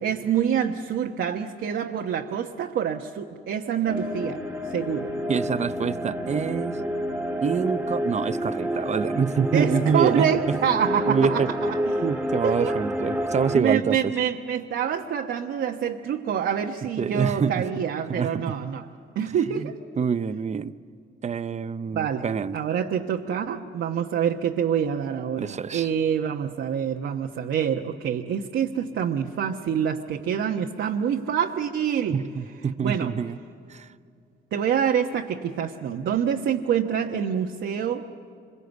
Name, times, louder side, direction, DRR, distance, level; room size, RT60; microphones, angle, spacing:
voice 1, 0.0-4.4 4.7-5.1 9.5-12.0 12.4-12.8 13.5-19.8 21.9-22.3 22.5-32.2 32.8-33.1 34.5-38.1, right 8 dB, 70° right, 1 dB, 1.1 m, -26 dB
sound 1, 3.9-13.6, equal, 5° right, 1.8 m, -29 dB
voice 2, 5.3-6.8 7.4-10.6 11.1-11.5 12.0-14.0 17.0-17.6 18.1-18.6 19.6-19.7 20.0-20.8 21.2-22.6 25.4-25.9 32.1-33.4 33.7-33.9, right 6 dB, 35° right, 13 dB, 0.7 m, -26 dB
26.0 x 23.0 x 8.1 m, 2.5 s
cardioid pair, 90°, 20 cm